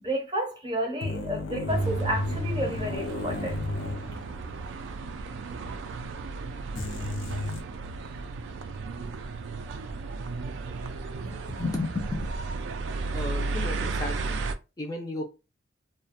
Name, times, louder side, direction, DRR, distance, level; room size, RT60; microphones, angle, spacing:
voice 1, 0.0-3.6, equal, 25° right, 0.6 m, -31 dB
sound 1, 1.0-4.8 5.0-5.1 6.8-7.6, left 2 dB, 85° left, 0.5 m, -33 dB
sound 2, 1.7-14.5, right 3 dB, 70° right, 0.3 m, -34 dB
voice 2, 11.3-12.2 13.1-14.4 14.8-15.3, left 2 dB, 20° left, 0.3 m, -33 dB
2.3 x 2.1 x 2.8 m
head